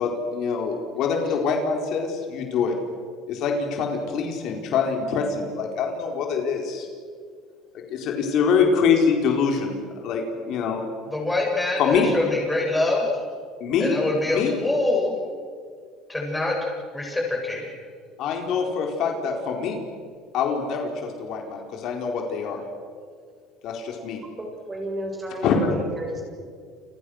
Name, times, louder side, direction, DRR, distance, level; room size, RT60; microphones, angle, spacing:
voice 1, 0.0-2.7 3.3-6.9 7.7-10.8 11.8-12.1 13.6-14.0 14.3-14.6 18.2-19.8 20.3-22.6 23.6-24.2 25.4-25.7, left 5 dB, 55° left, 2 dB, 4.6 m, -24 dB
voice 2, 11.1-13.2 13.8-15.1 16.1-16.6 16.9-17.7, left 2 dB, 5° left, -1 dB, 7.9 m, -24 dB
voice 3, 24.4-26.2, right 1 dB, 15° right, 1 dB, 7.2 m, -32 dB
29.5 x 28.0 x 6.6 m, 2.1 s
cardioid pair, 135°, 0 cm